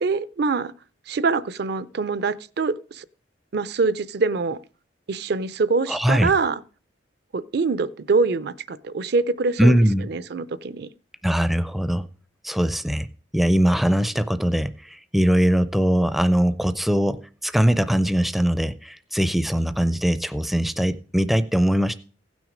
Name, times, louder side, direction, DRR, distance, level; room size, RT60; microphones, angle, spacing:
voice 1, 0.0-0.7 1.1-3.0 3.5-4.6 5.1-6.6 7.3-9.7 10.1-10.9, right 4 dB, 60° right, 0.5 m, -24 dB
voice 2, 5.9-6.3 9.6-10.1 11.2-12.1 12.4-13.1 13.3-21.9, equal, ahead, 0.4 m, -21 dB
16.0 x 6.2 x 5.0 m
head